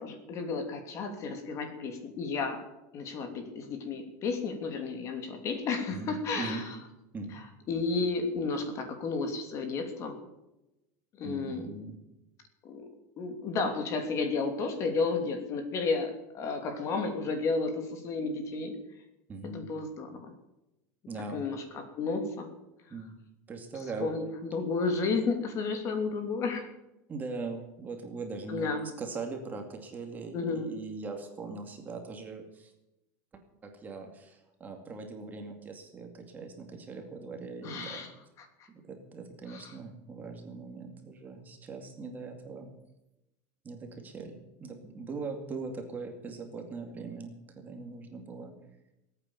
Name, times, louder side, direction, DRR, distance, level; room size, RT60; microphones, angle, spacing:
voice 1, 0.0-2.6 2.9-6.8 7.7-10.2 11.2-11.7 12.6-12.9 13.2-18.7 19.4-20.3 21.3-22.5 24.0-26.7 28.5-28.9 30.3-30.7 37.6-38.1 38.4-38.5 39.5-39.7, left 4 dB, 35° left, 6 dB, 3.0 m, -32 dB
voice 2, 5.9-6.6 7.1-7.4 11.2-12.0 19.3-19.7 21.1-21.5 22.9-23.2 23.5-24.1 27.1-32.7 33.6-38.0 38.7-42.7 43.6-48.5, right 4 dB, 20° right, 4 dB, 2.4 m, -41 dB
19.5 x 9.0 x 7.1 m, 0.93 s
supercardioid pair, 155°, 8 cm